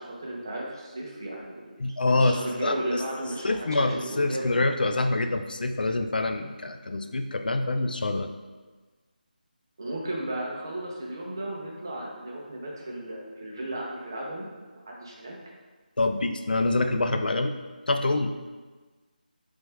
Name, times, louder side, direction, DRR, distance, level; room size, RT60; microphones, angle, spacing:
voice 1, 0.0-1.7 2.0-4.5 9.8-14.5 14.7-15.3, right 1 dB, 25° right, -2 dB, 0.5 m, -35 dB
voice 2, 1.8-2.4 2.6-3.0 3.4-8.3 16.0-17.5 17.9-18.3, left 2 dB, 70° left, 7 dB, 0.3 m, -26 dB
3.5 x 3.4 x 3.3 m, 1.3 s
figure-of-eight pair, 180°, 5 cm